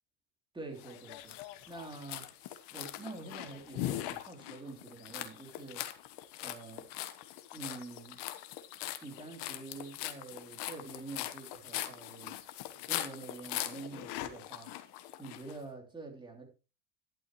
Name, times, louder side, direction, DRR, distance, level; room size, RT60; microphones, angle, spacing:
voice 1, 0.5-1.4 1.7-5.8 6.4-6.9 7.5-8.2 9.0-12.4 12.9-14.7 15.2-16.5, right 3 dB, 10° right, 3.2 m, -46 dB
sound 1, 0.8-15.6, left 14 dB, 55° left, 1.4 m, -41 dB
11.5 x 11.5 x 3.1 m
cardioid pair, 150°, 49 cm